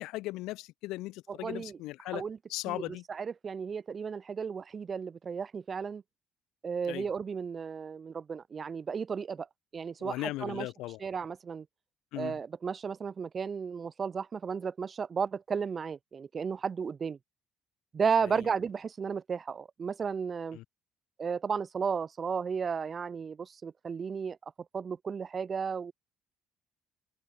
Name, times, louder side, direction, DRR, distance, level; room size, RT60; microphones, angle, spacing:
voice 1, 0.0-2.2 2.5-3.0 6.8-7.1 10.0-11.0 12.1-12.4 18.2-18.4 20.5-20.6, left 18 dB, 65° left, 0.4 m, -38 dB
voice 2, 1.3-1.8 2.1-2.4 2.7-6.0 6.6-9.5 9.7-10.7 11.0-11.7 12.2-17.2 17.9-20.6 21.2-24.4 24.7-25.9, right 6 dB, 40° right, 0.6 m, -34 dB
open air
figure-of-eight pair, 50°, 0 cm